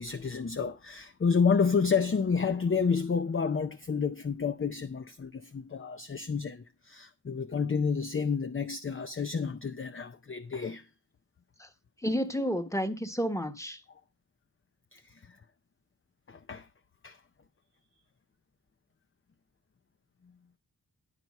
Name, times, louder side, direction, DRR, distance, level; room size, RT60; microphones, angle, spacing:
voice 1, 0.0-10.9 14.9-15.4 16.3-16.7 17.0-17.2, left 5 dB, 30° left, 0.5 m, -30 dB
voice 2, 12.0-13.8, equal, 10° left, 1.3 m, -31 dB
11.0 x 4.6 x 5.3 m
cardioid pair, 40°, 40 cm